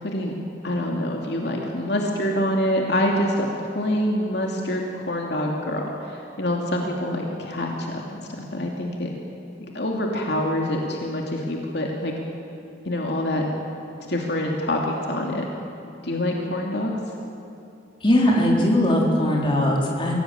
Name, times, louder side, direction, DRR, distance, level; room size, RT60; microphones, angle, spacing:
voice 1, 0.0-8.2 8.5-9.1 9.7-12.1 12.8-13.4 14.1-15.4 16.0-16.9, left 1 dB, 60° left, 0 dB, 2.6 m, -26 dB
voice 2, 18.0-20.2, left 1 dB, 25° left, -2 dB, 4.0 m, -20 dB
24.5 x 17.5 x 9.3 m, 2.6 s
head